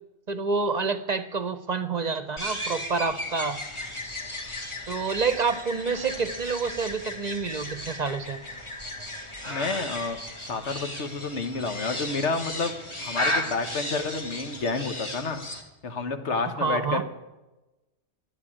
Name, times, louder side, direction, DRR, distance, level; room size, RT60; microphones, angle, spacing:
voice 1, 0.3-3.6 4.9-8.4 16.5-17.0, right 4 dB, 45° right, 12 dB, 0.7 m, -28 dB
sound 1, 2.4-15.6, left 1 dB, 25° left, 1.7 m, -35 dB
voice 2, 9.5-10.2 10.5-12.7 13.0-15.4 15.8-17.0, left 4 dB, 85° left, 8 dB, 1.5 m, -29 dB
12.5 x 9.5 x 8.7 m, 1.0 s
omnidirectional pair, 1.2 m